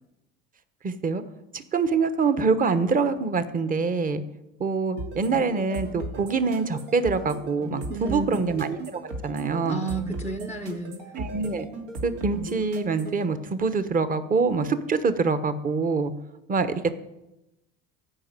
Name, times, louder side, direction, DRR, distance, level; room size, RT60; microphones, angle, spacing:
voice 1, 0.8-1.2 1.5-4.2 4.6-9.8 11.2-11.7 12.0-16.1 16.5-16.9, right 4 dB, 30° right, 11 dB, 1.1 m, -25 dB
sound 1, 5.0-13.2, right 2 dB, 80° right, 2.7 m, -37 dB
voice 2, 7.9-8.5 9.6-11.1, right 3 dB, 5° right, 7 dB, 0.7 m, -32 dB
15.0 x 5.5 x 9.1 m, 0.94 s
supercardioid pair, 110°, 30 cm